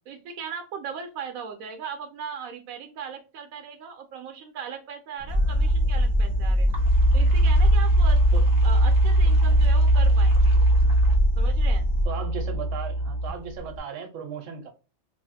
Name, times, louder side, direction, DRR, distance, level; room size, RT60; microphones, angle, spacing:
voice 1, 0.1-6.7 7.1-8.2 8.6-10.7 11.4-11.9, right 7 dB, 85° right, 1.0 m, -38 dB
sound 1, 5.2-13.8, right 1 dB, 35° right, 0.9 m, -21 dB
sound 2, 5.3-12.0, left 1 dB, 25° left, 0.7 m, -24 dB
voice 2, 12.0-14.7, right 6 dB, 65° right, 1.1 m, -36 dB
3.1 x 2.4 x 2.6 m
omnidirectional pair, 1.4 m